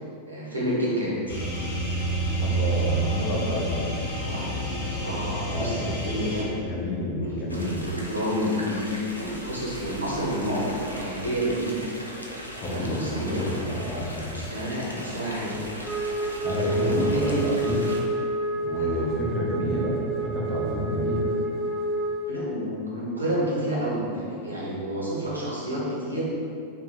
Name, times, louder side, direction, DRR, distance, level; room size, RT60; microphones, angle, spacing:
voice 1, 0.3-1.4 4.2-6.5 7.1-11.8 12.6-13.5 14.4-15.6 16.6-17.4 18.9-19.0 22.3-26.3, equal, 80° right, -6 dB, 0.7 m, -29 dB
sound 1, 1.3-6.4, right 1 dB, 65° left, 0.8 m, -28 dB
voice 2, 2.4-3.9 5.4-5.9 6.5-7.8 12.5-13.0 13.3-14.4 16.4-17.8 18.6-21.3, equal, 35° left, -3 dB, 0.6 m, -29 dB
sound 2, 7.5-18.0, equal, 85° left, 0.3 m, -38 dB
Wind instrument woodwind instrument, 15.8-22.3, right 1 dB, 15° right, 0.4 m, -29 dB
2.7 x 2.2 x 3.5 m, 2.4 s
figure-of-eight pair, 90°, 0 cm